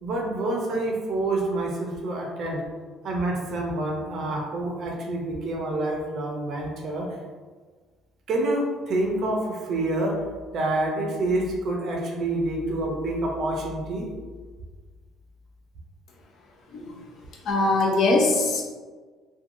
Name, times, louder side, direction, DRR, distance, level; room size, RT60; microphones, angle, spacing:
voice 1, 0.0-2.6 3.0-7.1 8.3-10.2 10.5-14.1, right 2 dB, 50° right, 0 dB, 0.5 m, -27 dB
voice 2, 17.4-18.6, left 2 dB, 50° left, 0 dB, 0.5 m, -21 dB
2.9 x 2.2 x 2.6 m, 1.4 s
cardioid pair, 150°, 0 cm